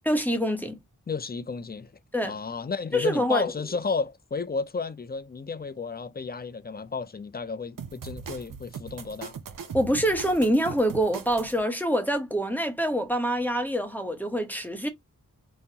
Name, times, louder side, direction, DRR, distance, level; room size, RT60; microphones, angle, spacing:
voice 1, 0.0-0.8 2.1-2.3 2.9-3.5 9.7-14.9, equal, 5° left, 0.9 m, -25 dB
voice 2, 1.1-1.9 2.2-9.3, left 4 dB, 30° left, 0.4 m, -32 dB
sound 1, 7.8-11.6, right 6 dB, 70° right, 0.6 m, -40 dB
3.6 x 2.1 x 2.8 m
wide cardioid pair, 65°, 34 cm